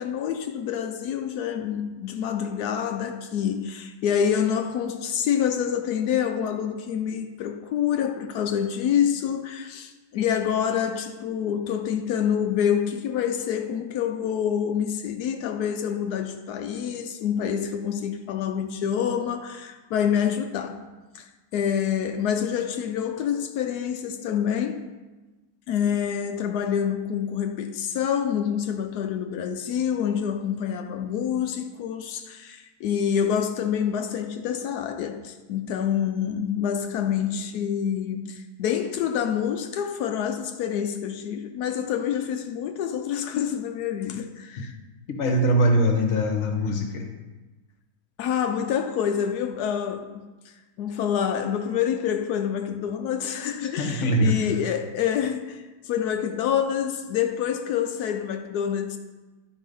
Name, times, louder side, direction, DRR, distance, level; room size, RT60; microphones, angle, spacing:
voice 1, 0.0-20.8 21.1-24.9 25.7-44.8 48.2-59.0, left 8 dB, 85° left, 1.1 m, -27 dB
voice 2, 45.1-47.0 53.6-54.4, equal, 50° left, 1.4 m, -22 dB
11.5 x 4.7 x 5.3 m
omnidirectional pair, 1.7 m